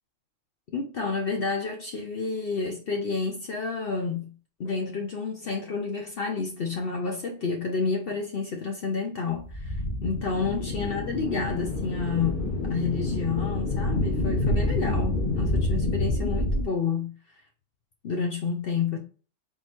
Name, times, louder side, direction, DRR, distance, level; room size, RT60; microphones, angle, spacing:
voice 1, 0.7-4.3 4.6-17.1 18.0-19.0, left 4 dB, 55° left, 0.8 m, -30 dB
sound 1, 9.4-16.6, left 2 dB, 40° left, 1.3 m, -27 dB
3.7 x 3.0 x 4.2 m
omnidirectional pair, 1.3 m